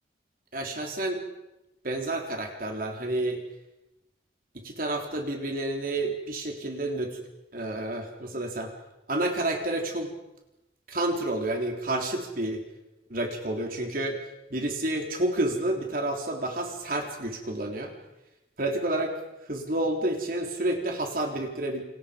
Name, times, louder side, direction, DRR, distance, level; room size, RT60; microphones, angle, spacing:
voice 1, 0.5-1.2 1.8-3.4 4.6-7.2 7.5-8.7 9.1-10.1 10.9-12.6 13.1-14.2 14.5-17.9 18.6-19.1 19.5-21.8, right 1 dB, 50° right, 2 dB, 3.8 m, -29 dB
29.0 x 29.0 x 5.3 m, 0.93 s
head